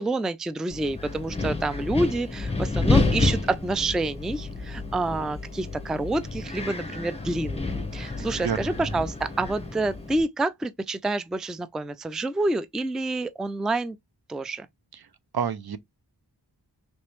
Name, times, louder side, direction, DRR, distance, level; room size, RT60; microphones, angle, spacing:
voice 1, 0.0-14.0 14.3-14.7, right 2 dB, ahead, 0.3 m, -28 dB
Wind, 0.7-10.2, left 3 dB, 15° left, 0.9 m, -29 dB
voice 2, 8.2-8.9 15.3-15.8, right 7 dB, 65° right, 0.5 m, -30 dB
3.2 x 3.0 x 3.0 m
wide cardioid pair, 45°, 41 cm